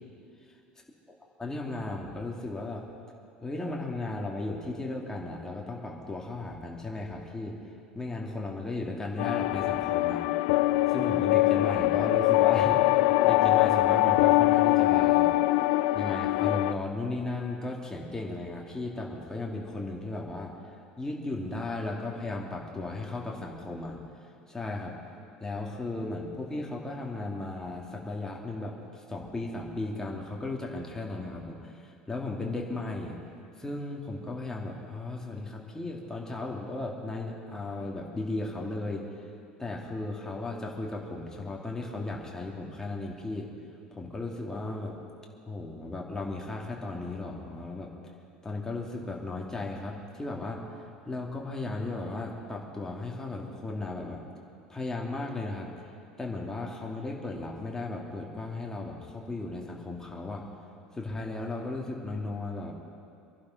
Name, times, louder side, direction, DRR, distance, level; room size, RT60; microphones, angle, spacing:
voice 1, 1.4-2.8 3.4-7.5 7.9-10.2 10.9-15.3 15.9-20.5 21.0-24.0 24.5-24.9 25.4-33.2 33.6-39.0 39.6-43.5 43.9-44.9 45.5-47.9 48.4-50.6 51.1-54.2 54.7-55.7 56.2-60.4 60.9-62.7, left 2 dB, 10° left, -1 dB, 2.4 m, -35 dB
sound 1, 9.2-16.7, left 18 dB, 60° left, 0.4 m, -23 dB
23.5 x 11.5 x 4.2 m, 2.4 s
figure-of-eight pair, 70°, 5 cm